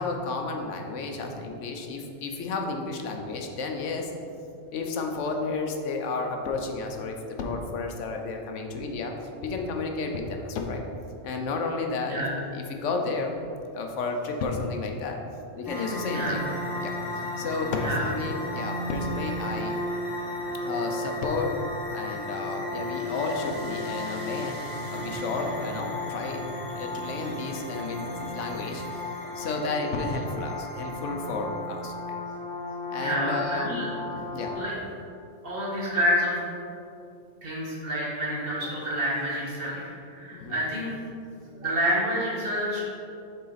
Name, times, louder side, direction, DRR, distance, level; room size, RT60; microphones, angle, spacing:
voice 1, 0.0-4.1 4.7-9.1 9.4-10.8 11.2-13.4 13.7-15.2 15.6-17.0 17.4-19.7 20.6-21.5 21.9-29.1 29.3-32.2 32.9-33.8 34.1-34.7 40.3-40.6, left 3 dB, 85° left, 3 dB, 1.1 m, -32 dB
sound 1, 15.7-34.5, left 1 dB, 20° left, 1.1 m, -34 dB
voice 2, 33.0-33.9 34.6-34.7 35.4-36.4 37.4-40.9 41.5-42.8, equal, 50° right, -7 dB, 1.7 m, -28 dB
6.6 x 4.1 x 4.0 m, 2.6 s
omnidirectional pair, 1.2 m